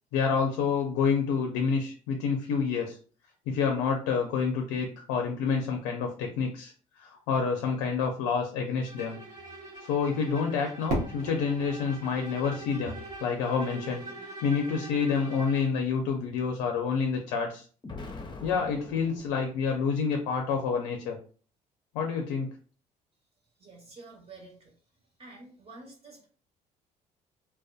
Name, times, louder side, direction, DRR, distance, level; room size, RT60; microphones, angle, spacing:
voice 1, 0.1-3.0 3.5-6.7 7.0-9.2 9.8-17.7 18.4-21.2 21.9-22.5, left 5 dB, 80° left, 3 dB, 0.4 m, -28 dB
Bowed string instrument, 8.9-15.8, right 1 dB, 50° right, 1.2 m, -44 dB
Fireworks, 10.9-13.8, right 1 dB, 85° right, 0.8 m, -36 dB
Explosion, 17.8-20.0, left 3 dB, 25° left, 0.6 m, -43 dB
voice 2, 23.6-24.7 25.2-26.3, right 3 dB, 30° right, -1 dB, 1.2 m, -49 dB
2.5 x 2.2 x 2.3 m, 0.41 s
hypercardioid pair, 60°, 18 cm